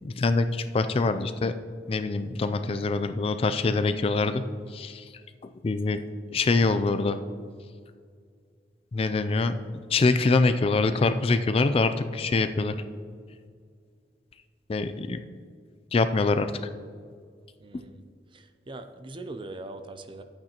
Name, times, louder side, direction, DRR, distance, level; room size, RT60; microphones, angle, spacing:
voice 1, 0.0-1.5 1.9-4.4 4.7-5.1 5.4-6.0 6.3-7.2 8.9-9.5 9.9-12.7 14.7-15.2 15.9-16.5, left 3 dB, 35° left, 10 dB, 0.3 m, -24 dB
voice 2, 17.6-18.0 18.3-20.2, right 2 dB, 30° right, 8 dB, 0.5 m, -41 dB
11.5 x 8.7 x 2.9 m, 2.1 s
head